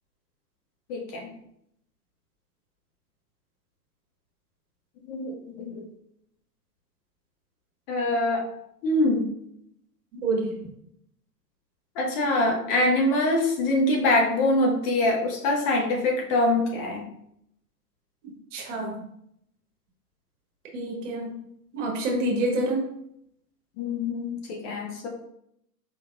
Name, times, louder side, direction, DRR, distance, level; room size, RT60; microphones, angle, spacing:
voice 1, 0.9-1.3 5.1-5.8 7.9-8.4 8.8-9.3 12.0-17.0 23.8-25.1, left 1 dB, 35° left, 0 dB, 0.9 m, -24 dB
voice 2, 10.2-10.5 18.5-19.0 20.7-21.4 21.7-22.8, right 2 dB, 50° right, 1 dB, 1.2 m, -27 dB
4.6 x 3.2 x 2.4 m, 0.74 s
figure-of-eight pair, 105°, 49 cm